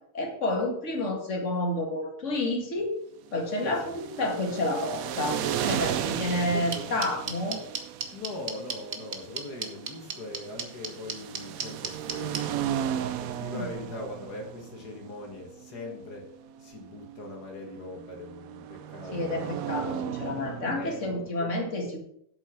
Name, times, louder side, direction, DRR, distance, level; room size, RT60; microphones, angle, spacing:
voice 1, 0.1-2.9 3.3-7.6 13.5-13.7 19.1-22.0, left 1 dB, 45° left, 1 dB, 2.3 m, -30 dB
sound 1, 3.4-21.3, right 10 dB, 65° right, 1.0 m, -36 dB
voice 2, 5.6-6.8 8.1-12.6 13.2-16.3 16.6-19.6 20.6-21.6, left 2 dB, 65° left, 1 dB, 2.2 m, -41 dB
sound 2, 6.7-12.4, right 5 dB, 45° right, 1.3 m, -32 dB
8.0 x 7.5 x 5.9 m, 0.72 s
omnidirectional pair, 1.8 m